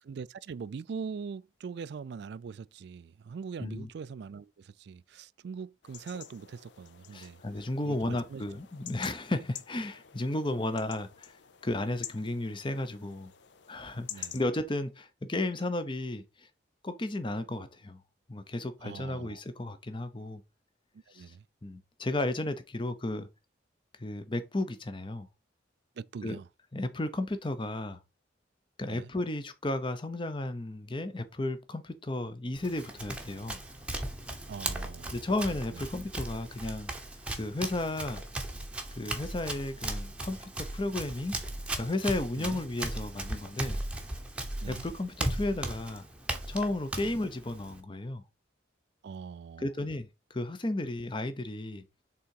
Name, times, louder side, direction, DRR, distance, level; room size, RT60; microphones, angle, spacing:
voice 1, 0.0-7.4 7.8-8.4 14.1-14.4 18.8-19.4 21.1-21.5 26.0-26.5 28.9-29.1 34.5-35.2 35.7-35.8 42.4-42.6 44.6-44.8 47.0-47.1 49.0-49.7, right 5 dB, 60° right, 0.3 m, -42 dB
sound 1, 5.8-14.4, left 10 dB, 65° left, 0.6 m, -48 dB
voice 2, 7.1-11.4 11.6-13.3 13.7-16.5 16.8-18.0 18.3-20.4 21.1-21.3 21.6-23.3 24.0-25.3 26.2-26.4 26.7-28.0 28.8-33.6 35.1-36.9 37.4-38.2 39.0-41.4 41.7-43.8 44.7-46.0 46.5-48.2 49.6-51.8, left 2 dB, 25° left, 0.7 m, -33 dB
Run, 32.5-47.8, right 1 dB, 5° right, 0.9 m, -37 dB
5.7 x 3.8 x 4.6 m
head